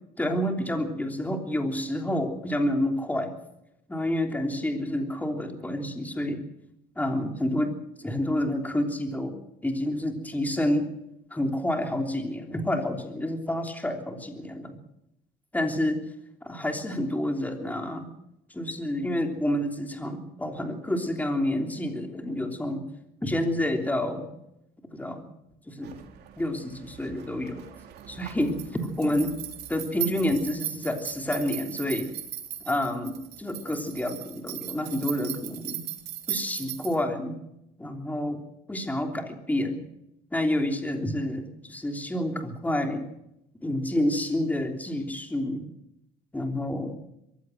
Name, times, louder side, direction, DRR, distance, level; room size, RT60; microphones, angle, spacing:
voice 1, 0.2-3.3 3.9-6.4 6.9-9.4 9.6-10.9 11.3-14.8 15.5-16.0 16.4-18.1 18.5-22.8 23.2-24.3 24.9-25.2 25.7-26.0 26.4-27.6 28.1-29.3 29.7-32.1 32.6-35.8 36.3-37.4 37.8-38.4 38.7-39.8 40.3-43.1 43.6-45.6 46.3-47.0, left 1 dB, 10° left, 4 dB, 3.3 m, -29 dB
sound 1, 25.8-37.0, right 12 dB, 75° right, 3.4 m, -38 dB
23.0 x 15.5 x 7.9 m, 0.83 s
cardioid pair, 110°, 17 cm